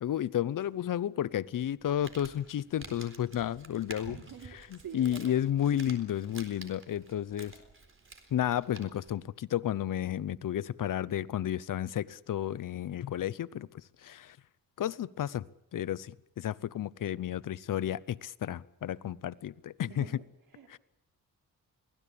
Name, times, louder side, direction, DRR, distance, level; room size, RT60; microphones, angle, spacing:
voice 1, 0.0-4.2 4.7-7.5 8.3-13.7 14.0-14.4 14.8-15.5 15.7-20.0 20.7-20.8, left 11 dB, 65° left, 0.7 m, -32 dB
Crumpling crinkling, 1.7-9.2, right 3 dB, 35° right, 4.1 m, -51 dB
voice 2, 4.0-5.4 19.9-20.1 20.5-20.8, right 7 dB, 85° right, 3.9 m, -46 dB
23.5 x 17.5 x 8.5 m
wide cardioid pair, 115°, 34 cm